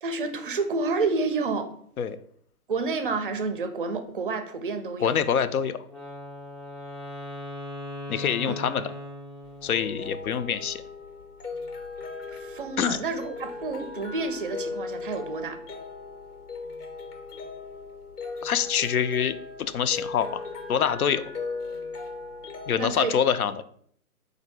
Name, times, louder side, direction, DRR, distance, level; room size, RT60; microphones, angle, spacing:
voice 1, 0.0-1.7 2.7-5.1 8.5-8.6 12.3-15.6 22.7-23.2, right 4 dB, 40° right, 8 dB, 0.4 m, -29 dB
voice 2, 5.0-5.8 8.1-8.8 9.6-10.8 12.8-13.0 18.4-20.4 20.7-21.2 22.7-23.6, left 8 dB, 75° left, 12 dB, 0.5 m, -25 dB
Wind instrument woodwind instrument, 5.9-10.1, left 1 dB, 20° left, 0.4 m, -39 dB
sound 1, 9.4-23.0, left 4 dB, 90° left, 0.9 m, -38 dB
3.9 x 2.6 x 4.4 m, 0.63 s
figure-of-eight pair, 140°, 44 cm